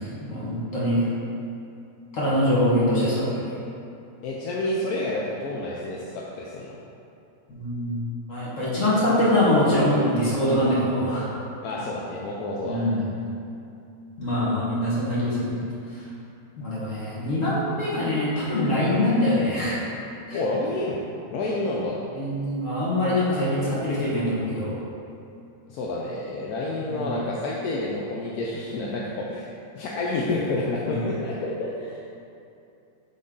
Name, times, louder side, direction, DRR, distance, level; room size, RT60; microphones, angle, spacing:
voice 1, 0.2-1.1 2.1-3.4 7.5-8.0 8.3-11.3 12.6-13.2 14.2-15.5 16.6-19.8 20.3-20.4 22.1-24.7 26.8-27.1 30.8-31.0, left 1 dB, 50° left, -8 dB, 1.7 m, -23 dB
voice 2, 4.2-6.8 11.6-12.9 20.3-21.0 21.3-22.0 25.7-29.5 29.7-32.0, left 2 dB, 70° left, -4 dB, 1.0 m, -29 dB
7.5 x 3.9 x 3.7 m, 2.6 s
omnidirectional pair, 1.8 m